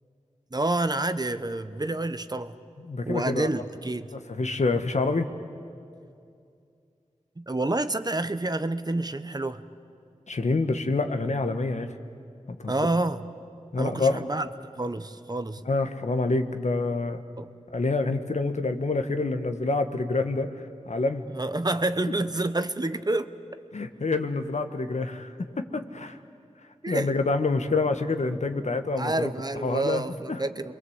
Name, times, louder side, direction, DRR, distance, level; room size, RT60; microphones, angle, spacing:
voice 1, 0.5-2.5 3.1-4.1 7.4-9.6 12.7-13.2 13.8-14.5 14.8-15.6 17.4-17.5 21.3-23.3 26.8-27.1 29.0-30.7, right 2 dB, 35° right, 11 dB, 1.0 m, -28 dB
voice 2, 2.8-3.5 4.3-5.3 10.3-11.9 12.5-12.7 13.7-14.2 15.6-17.2 17.7-20.5 20.9-21.3 23.7-26.2 26.9-29.3 29.6-30.4, left 3 dB, 70° left, 7 dB, 1.5 m, -27 dB
29.0 x 22.5 x 8.1 m, 2.4 s
wide cardioid pair, 55°, 12 cm